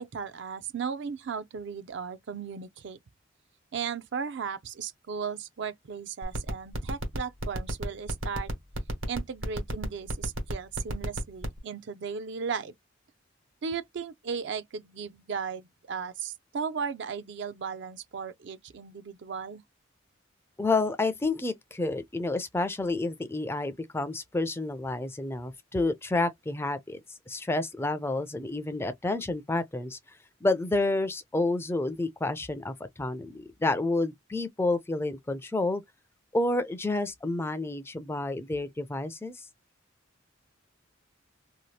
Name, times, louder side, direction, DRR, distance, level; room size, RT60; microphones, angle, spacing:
voice 1, 0.0-3.0 3.7-8.5 9.1-12.7 13.6-19.6, right 6 dB, 60° right, 0.4 m, -36 dB
sound 1, 6.2-11.6, right 1 dB, 80° right, 1.2 m, -32 dB
voice 2, 20.6-30.0 30.4-35.8 36.3-39.5, left 2 dB, 10° left, 0.3 m, -29 dB
2.8 x 2.3 x 3.1 m
head